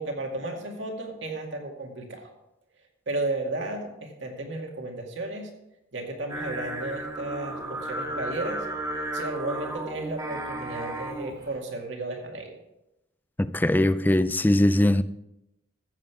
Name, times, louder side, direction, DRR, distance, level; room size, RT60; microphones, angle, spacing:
voice 1, 0.0-2.3 3.1-5.5 5.9-8.7 9.1-12.6, right 2 dB, 60° right, 2.2 m, -33 dB
Singing, 6.3-11.5, right 1 dB, 20° right, 1.9 m, -34 dB
voice 2, 13.4-15.0, left 1 dB, 10° left, 0.3 m, -21 dB
14.5 x 7.6 x 4.9 m
head